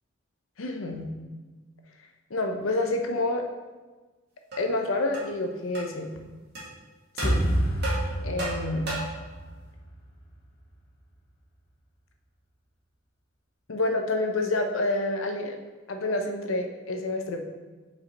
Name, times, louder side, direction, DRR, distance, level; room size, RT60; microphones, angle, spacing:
voice 1, 0.6-1.1 2.3-3.4 4.6-6.1 7.2-7.4 8.2-8.9 13.7-15.6 15.9-17.4, left 2 dB, 90° left, 4 dB, 0.7 m, -28 dB
sound 1, 4.5-4.6 5.1-5.3 5.7-5.9 6.5-6.7 7.2-7.4 7.8-9.2, right 2 dB, 55° right, 1.8 m, -33 dB
sound 2, 7.2-10.3, equal, 45° left, 1.1 m, -28 dB
4.9 x 4.9 x 4.2 m, 1.3 s
head